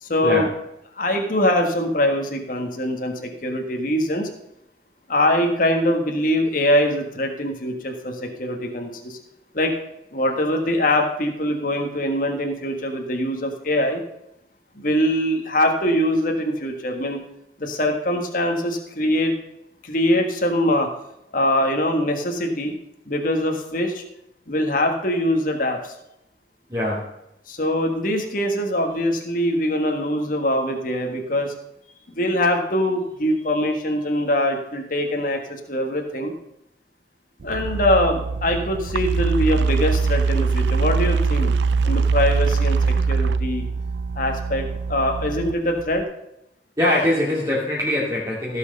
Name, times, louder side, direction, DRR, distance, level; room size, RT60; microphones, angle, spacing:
voice 1, 0.0-0.5 1.0-4.3 5.1-9.2 9.5-9.7 10.1-14.0 14.8-17.2 17.6-19.3 19.8-20.9 21.3-22.7 23.1-24.0 24.5-25.9 27.5-31.5 32.1-36.3 37.4-41.5 41.8-43.7 44.1-46.0, left 1 dB, 50° left, 3 dB, 1.6 m, -23 dB
voice 2, 26.7-27.1 46.8-48.6, left 1 dB, 20° right, -7 dB, 2.5 m, -22 dB
sound 1, 37.4-46.0, right 4 dB, 80° right, 0.4 m, -22 dB
15.5 x 6.5 x 5.3 m, 0.83 s
head